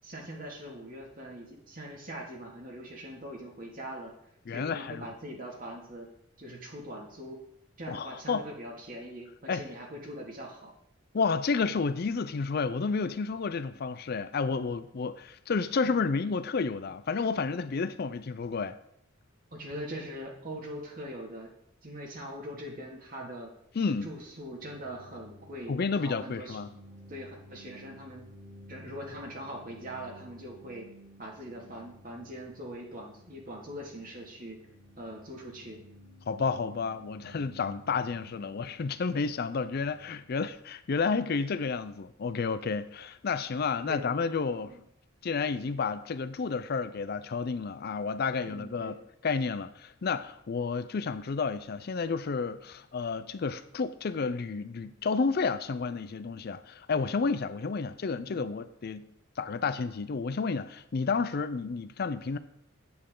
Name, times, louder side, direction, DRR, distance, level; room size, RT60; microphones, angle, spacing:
voice 1, 0.0-4.1 4.5-6.1 6.4-7.4 7.8-10.7 15.8-16.1 19.5-21.5 21.8-23.5 24.0-26.6 27.1-28.3 28.7-30.9 31.2-34.6 35.0-35.8 43.8-44.1 44.6-44.8 48.5-49.0 58.3-58.5, equal, 45° right, 2.2 m, -42 dB
voice 2, 4.5-5.1 7.9-8.4 9.5-9.6 11.1-18.8 23.8-24.1 25.7-26.7 36.3-44.8 45.2-49.0 49.2-59.1 59.4-62.4, left 4 dB, 50° left, 0.4 m, -31 dB
sound 1, 23.7-41.2, equal, 80° right, 2.8 m, -54 dB
8.9 x 8.5 x 3.8 m
head